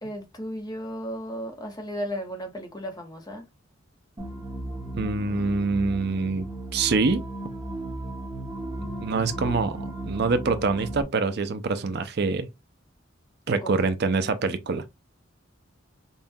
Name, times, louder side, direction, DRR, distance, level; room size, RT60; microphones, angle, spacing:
voice 1, 0.0-3.5 13.5-13.8, equal, 20° left, 0.9 m, -35 dB
sound 1, 4.2-11.0, right 1 dB, 20° right, 1.1 m, -35 dB
voice 2, 4.9-7.2 8.8-12.5 13.5-14.8, right 4 dB, 55° right, 0.5 m, -25 dB
5.5 x 2.3 x 2.6 m
head